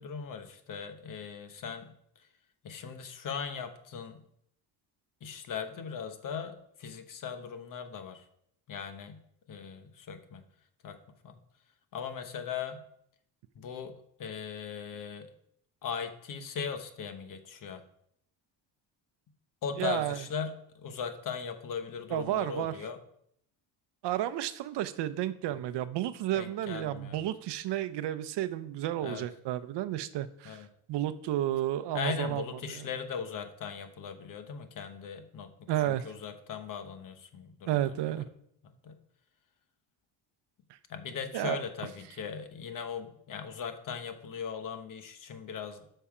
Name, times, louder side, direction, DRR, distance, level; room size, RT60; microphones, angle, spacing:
voice 1, 0.0-1.9 2.6-4.2 5.2-8.2 8.7-9.2 9.5-10.4 10.8-11.0 11.2-11.4 11.9-12.8 13.5-13.9 14.2-15.3 15.8-17.8 19.6-23.0 25.5-25.6 26.3-27.3 29.0-29.3 30.4-30.7 31.9-38.2 38.6-38.9 40.9-45.9, left 6 dB, 45° left, 8 dB, 1.1 m, -39 dB
voice 2, 19.8-20.2 22.1-22.7 24.0-32.8 35.7-36.1 37.7-38.3 41.3-41.6, right 13 dB, 60° right, 13 dB, 0.7 m, -32 dB
13.0 x 5.6 x 4.9 m, 0.71 s
cardioid pair, 165°, 46 cm